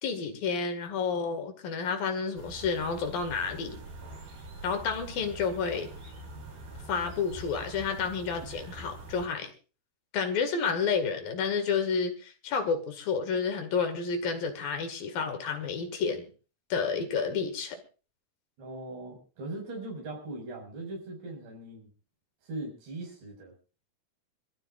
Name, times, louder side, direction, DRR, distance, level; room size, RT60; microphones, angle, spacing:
voice 1, 0.0-3.8 4.6-5.9 6.9-9.5 10.1-16.3 16.7-17.8, left 5 dB, 65° left, 7 dB, 3.5 m, -30 dB
sound 1, 2.3-9.3, right 2 dB, 60° right, 5.7 m, -44 dB
voice 2, 18.6-21.9 22.4-23.5, right 2 dB, 85° right, 1 dB, 7.6 m, -40 dB
26.5 x 14.5 x 2.4 m, 0.35 s
omnidirectional pair, 4.7 m